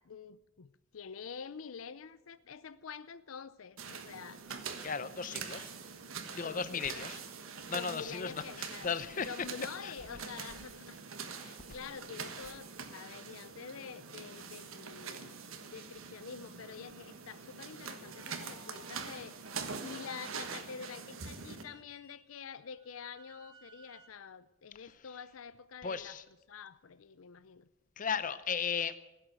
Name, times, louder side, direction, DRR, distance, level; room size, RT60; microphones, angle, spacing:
voice 1, 0.0-4.4 6.4-7.0 7.7-8.9 9.3-11.0 11.3-15.4 15.7-26.2 26.5-27.7, left 6 dB, 85° left, 0.6 m, -47 dB
sound 1, 3.8-21.6, right 5 dB, 85° right, 1.4 m, -44 dB
voice 2, 4.8-5.7 6.3-7.2 7.7-9.5 9.8-9.9 24.7-25.1 25.8-26.2 28.0-29.0, left 6 dB, 40° left, 0.6 m, -36 dB
sound 2, 17.9-19.2 21.6-24.1, right 1 dB, 25° right, 1.7 m, -61 dB
16.0 x 8.0 x 9.0 m
head